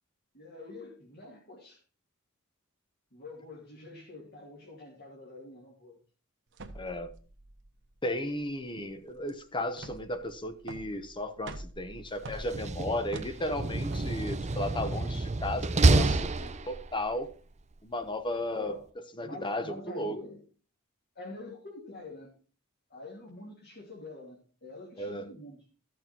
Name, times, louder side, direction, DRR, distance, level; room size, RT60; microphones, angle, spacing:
voice 1, 0.3-1.8 3.1-6.0 18.6-18.8 19.2-20.4 21.2-22.3 22.9-25.6, left 2 dB, 45° left, 2.6 m, -46 dB
sound 1, 6.5-17.7, right 2 dB, 60° right, 1.2 m, -48 dB
voice 2, 6.7-7.1 8.0-17.3 17.8-20.2 25.0-25.3, left 1 dB, 20° left, 1.0 m, -35 dB
Slam, 12.4-17.1, right 3 dB, 30° right, 0.6 m, -28 dB
13.5 x 6.6 x 4.4 m
head